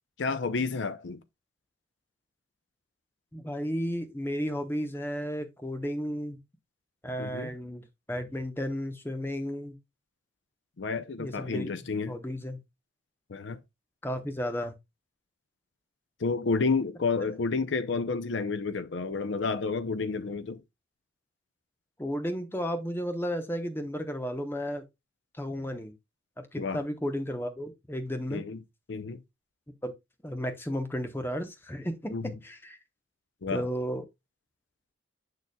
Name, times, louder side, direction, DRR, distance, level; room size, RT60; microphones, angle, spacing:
voice 1, 0.2-1.2 7.2-7.5 10.8-12.2 13.3-13.6 16.2-20.6 26.6-26.8 28.3-28.6 28.9-29.2 32.1-32.4 33.4-33.6, left 4 dB, 70° left, 0.6 m, -30 dB
voice 2, 3.3-6.4 7.0-9.8 11.2-11.7 12.1-12.6 14.0-14.7 22.0-24.8 25.4-25.9 26.5-28.4 29.8-29.9 30.2-32.8 33.5-34.1, equal, 10° left, 0.9 m, -33 dB
6.9 x 6.6 x 2.2 m
head